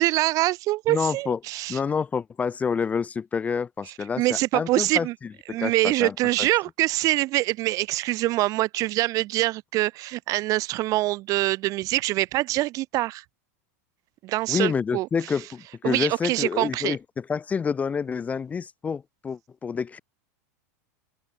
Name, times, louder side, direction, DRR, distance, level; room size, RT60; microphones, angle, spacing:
voice 1, 0.0-1.8 4.2-5.1 5.5-13.2 14.2-15.1 15.8-17.0, right 18 dB, 40° right, 0.4 m, -24 dB
voice 2, 0.9-1.4 1.7-5.1 5.5-6.5 14.5-20.0, left 6 dB, 15° left, 0.4 m, -28 dB
open air
supercardioid pair, 125°, 9 cm